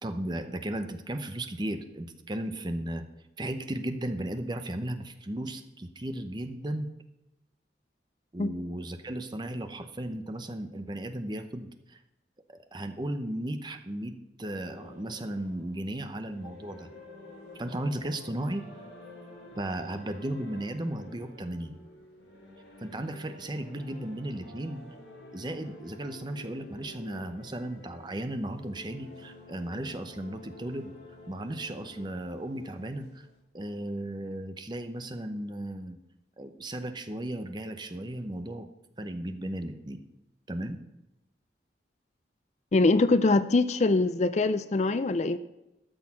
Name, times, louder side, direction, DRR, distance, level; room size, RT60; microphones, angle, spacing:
voice 1, 0.0-3.0 3.4-6.9 8.3-12.0 12.5-16.9 17.6-18.6 19.6-21.7 22.8-24.8 25.3-30.9 31.3-33.3 33.5-36.0 36.4-38.7 39.0-40.0 40.5-40.8, right 1 dB, 25° right, 8 dB, 0.7 m, -35 dB
Choir temple November applause, 14.4-33.4, left 2 dB, 75° left, 5.1 m, -50 dB
voice 2, 42.7-45.4, left 3 dB, 40° left, 13 dB, 0.4 m, -23 dB
12.5 x 6.4 x 5.9 m, 0.92 s
head